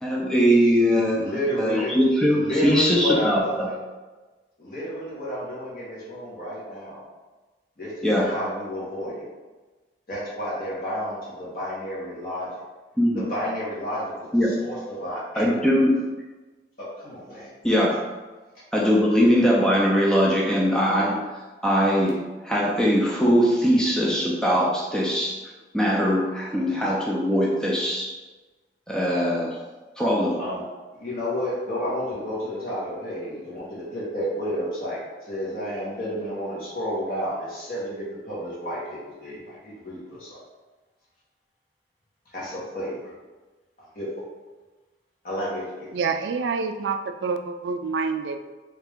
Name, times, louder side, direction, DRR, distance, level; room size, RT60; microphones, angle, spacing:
voice 1, 0.0-1.2 1.6-3.7 8.0-8.4 13.0-13.3 14.3-14.6 15.4-16.1 17.6-18.0 18.7-21.2 21.6-25.3 25.7-28.1 28.9-29.6 30.0-30.4, equal, 5° left, -4 dB, 0.4 m, -21 dB
voice 2, 1.1-1.9 2.3-3.8 4.6-7.0 7.8-9.2 10.1-12.5 13.1-14.3 14.6-15.5 16.8-17.5 30.4-30.6 31.0-40.4 42.3-43.0 43.9-44.1 45.2-45.9, equal, 50° left, -8 dB, 1.4 m, -31 dB
voice 3, 45.9-48.5, right 5 dB, 75° right, 7 dB, 0.3 m, -27 dB
3.4 x 2.8 x 3.5 m, 1.3 s
head